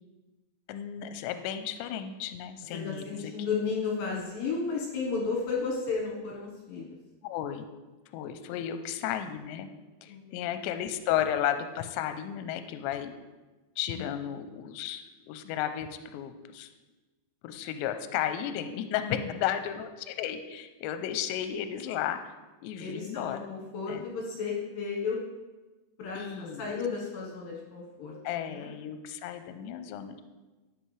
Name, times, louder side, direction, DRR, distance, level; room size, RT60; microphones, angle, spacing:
voice 1, 0.7-3.3 7.2-7.7 8.1-9.7 10.0-13.1 13.8-16.7 17.4-22.2 22.6-23.4 23.9-24.1 26.2-26.7 28.2-30.2, left 10 dB, 85° left, 9 dB, 2.7 m, -33 dB
voice 2, 2.7-6.9 8.5-8.6 10.1-10.5 13.9-14.1 19.0-19.2 22.8-25.2 26.0-28.7, left 5 dB, 65° left, -2 dB, 2.4 m, -34 dB
13.5 x 7.9 x 3.2 m, 1.2 s
omnidirectional pair, 5.3 m